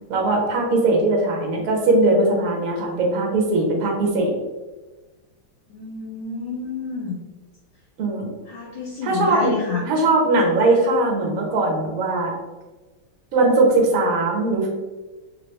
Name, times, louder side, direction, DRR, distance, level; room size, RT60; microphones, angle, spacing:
voice 1, 0.1-4.4 8.0-8.3 9.0-9.5 9.9-12.3 13.3-14.7, right 2 dB, 60° right, 0 dB, 1.0 m, -20 dB
voice 2, 5.7-7.2 8.5-9.8, left 4 dB, 70° left, -2 dB, 1.2 m, -29 dB
3.1 x 3.0 x 3.1 m, 1.2 s
omnidirectional pair, 2.3 m